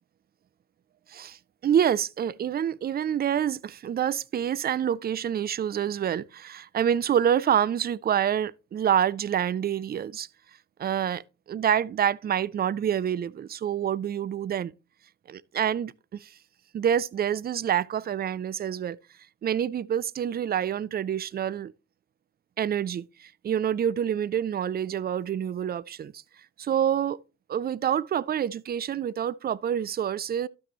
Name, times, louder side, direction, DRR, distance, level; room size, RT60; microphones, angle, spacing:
voice 1, 1.1-10.3 10.8-11.2 11.5-14.7 15.3-16.3 16.7-19.0 19.4-21.7 22.6-26.1 26.6-27.2 27.5-30.5, right 9 dB, 25° right, 0.4 m, -27 dB
12.0 x 6.1 x 2.9 m
hypercardioid pair, 45°, 41 cm